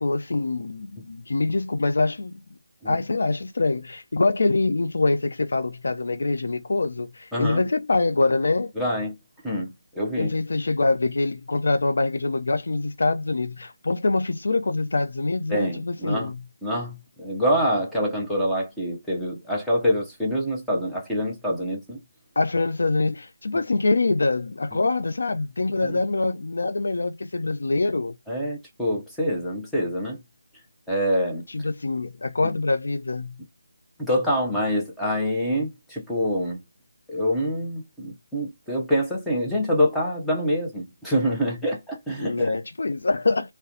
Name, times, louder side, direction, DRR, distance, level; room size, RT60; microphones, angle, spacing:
voice 1, 0.0-2.3 2.9-8.7 10.2-16.4 22.4-28.1 31.5-33.3 42.2-43.5, left 3 dB, 65° left, 0.3 m, -24 dB
voice 2, 7.3-7.6 8.8-9.1 9.4-10.3 15.5-16.3 16.6-22.0 23.5-23.6 25.8-26.0 28.3-30.2 30.9-31.4 34.0-36.6 37.1-42.5, equal, ahead, 0.6 m, -26 dB
2.4 x 2.1 x 2.7 m
figure-of-eight pair, 170°, 0 cm